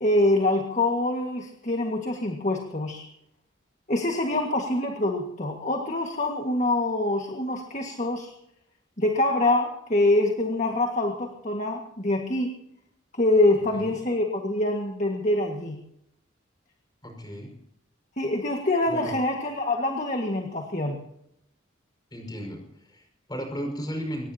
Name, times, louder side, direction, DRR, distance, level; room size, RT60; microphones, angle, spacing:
voice 1, 0.0-3.1 3.9-8.3 9.0-12.5 13.1-15.8 18.2-21.0, left 2 dB, 35° left, 3 dB, 1.8 m, -25 dB
voice 2, 17.0-17.5 18.9-19.2 22.1-24.3, equal, 20° left, 3 dB, 5.6 m, -35 dB
23.5 x 20.5 x 2.9 m, 0.78 s
head